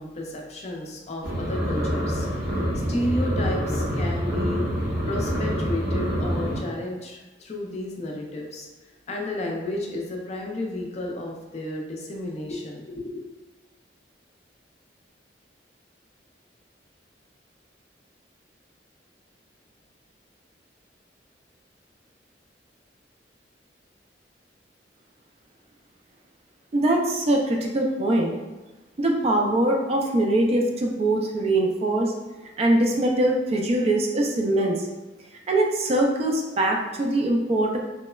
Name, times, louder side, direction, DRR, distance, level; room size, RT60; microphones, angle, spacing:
voice 1, 0.0-2.6 2.9-4.7 5.1-8.7 9.1-13.2, left 1 dB, 40° left, 0 dB, 0.4 m, -32 dB
sound 1, 1.2-6.6, equal, 60° right, 0.7 m, -26 dB
voice 2, 26.7-28.3 29.0-32.1 32.6-34.9 35.5-37.8, right 1 dB, 35° right, 1 dB, 0.3 m, -22 dB
3.0 x 2.0 x 2.2 m, 1.1 s
head